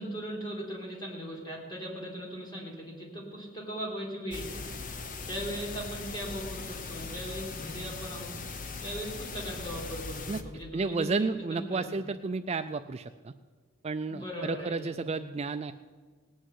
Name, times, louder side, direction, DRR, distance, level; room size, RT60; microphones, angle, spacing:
voice 1, 0.0-4.7 5.3-8.4 8.8-11.9 14.1-15.0, equal, 20° left, -3 dB, 3.6 m, -38 dB
sound 1, 4.3-10.4, left 4 dB, 35° left, 0.9 m, -40 dB
voice 2, 10.7-13.3 13.8-15.7, right 4 dB, 30° right, 9 dB, 0.3 m, -32 dB
19.0 x 6.4 x 9.4 m, 1.5 s
head